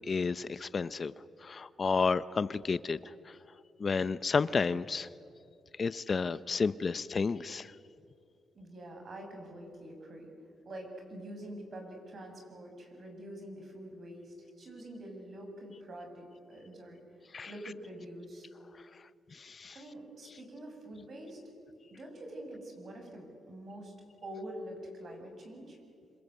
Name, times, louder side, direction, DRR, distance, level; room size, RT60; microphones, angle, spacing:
voice 1, 0.1-1.1 1.4-3.3 3.8-5.1 5.8-7.7 17.3-17.5 19.3-19.7, left 4 dB, 40° left, 16 dB, 0.6 m, -31 dB
voice 2, 8.5-10.3 10.7-18.5 19.7-21.4 21.9-23.9 24.2-25.8, right 1 dB, 50° right, 3 dB, 7.5 m, -46 dB
26.5 x 26.5 x 8.2 m, 2.5 s
cardioid pair, 100°, 0 cm